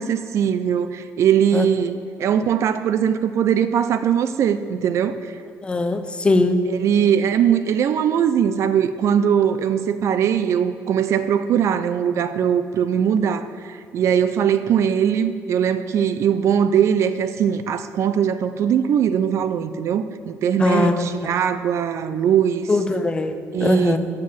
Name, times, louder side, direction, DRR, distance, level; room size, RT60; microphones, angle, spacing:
voice 1, 0.0-5.2 6.7-22.7 23.5-24.0, right 8 dB, 55° right, 11 dB, 0.4 m, -20 dB
voice 2, 5.6-6.6 20.6-21.3 22.7-23.3 23.6-24.0, left 2 dB, 15° left, 9 dB, 0.5 m, -20 dB
7.4 x 6.1 x 7.4 m, 2.2 s
cardioid pair, 145°, 6 cm